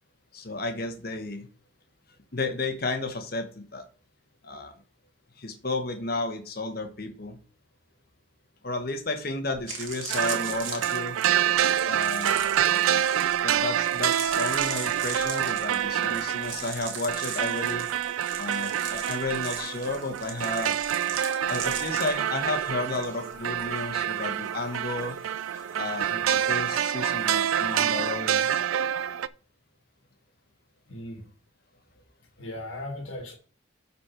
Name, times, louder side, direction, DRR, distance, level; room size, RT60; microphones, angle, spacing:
voice 1, 0.3-1.5 2.3-3.8 4.4-4.7 5.4-7.4 8.6-11.2 11.8-12.5 13.4-17.9 18.4-20.8 21.5-25.2 25.8-28.5, left 2 dB, 45° left, 1.2 m, -32 dB
sound 1, 9.1-9.2 9.5-23.1 23.3-23.7, right 6 dB, 70° right, 1.7 m, -38 dB
sound 2, 10.1-29.3, right 10 dB, 85° right, 0.4 m, -27 dB
sound 3, 18.3-28.1, equal, 15° right, 4.3 m, -48 dB
voice 2, 30.9-31.2 32.4-33.4, left 1 dB, 75° left, 1.7 m, -37 dB
11.5 x 4.2 x 4.4 m
head